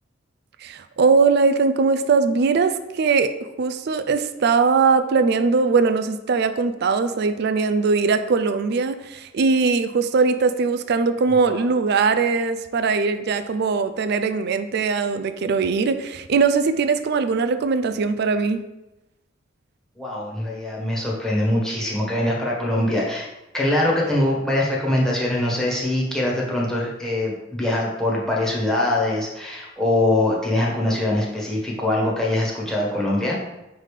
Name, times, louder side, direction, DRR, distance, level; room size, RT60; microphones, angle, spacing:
voice 1, 0.6-3.3 3.6-18.6, right 4 dB, 55° right, 10 dB, 0.4 m, -20 dB
voice 2, 20.0-23.3 23.5-33.4, left 1 dB, 5° left, -4 dB, 1.4 m, -23 dB
5.7 x 3.5 x 4.9 m, 0.96 s
head